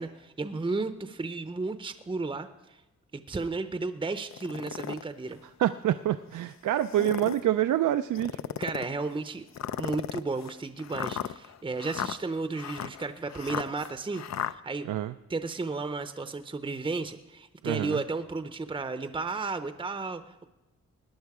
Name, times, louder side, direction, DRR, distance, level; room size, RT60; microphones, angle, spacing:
voice 1, 0.0-2.8 3.1-5.4 8.6-9.5 9.8-14.9 15.3-20.4, right 3 dB, 15° right, 9 dB, 0.6 m, -33 dB
sound 1, 4.3-5.0 5.6-5.7 6.8-7.5 8.1-8.9 9.5-14.5, left 10 dB, 65° left, 0.5 m, -35 dB
voice 2, 5.6-8.4 14.8-15.1 17.6-18.0, right 12 dB, 85° right, 10 dB, 0.5 m, -27 dB
18.5 x 10.5 x 4.8 m, 0.97 s
wide cardioid pair, 115°, 30 cm